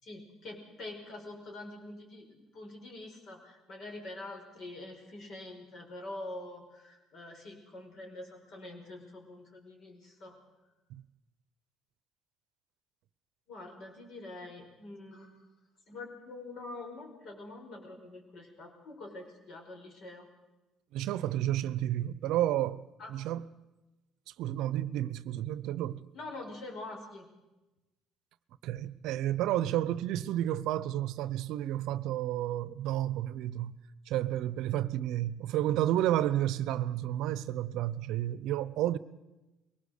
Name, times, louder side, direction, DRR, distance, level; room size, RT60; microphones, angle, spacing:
voice 1, 0.0-10.4 13.5-15.4 15.9-20.3 23.0-23.1 26.1-27.3, left 2 dB, 60° left, 5.2 m, -45 dB
voice 2, 20.9-22.8 23.1-23.5 24.3-26.0 28.6-33.8 34.1-39.0, right 13 dB, 70° right, 0.7 m, -31 dB
21.5 x 18.5 x 6.7 m
hypercardioid pair, 65°, 0 cm